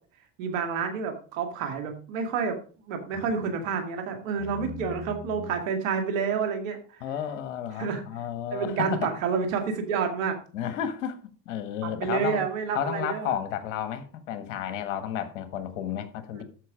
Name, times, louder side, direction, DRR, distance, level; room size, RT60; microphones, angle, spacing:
voice 1, 0.4-2.6 2.9-6.8 7.8-8.0 8.5-10.4 11.8-13.3, right 6 dB, 90° right, 2.4 m, -29 dB
voice 2, 4.4-5.5 7.0-9.1 10.5-11.2 11.5-12.5 12.8-16.4, left 9 dB, 85° left, 1.6 m, -32 dB
13.0 x 5.2 x 4.9 m
supercardioid pair, 90°, 38 cm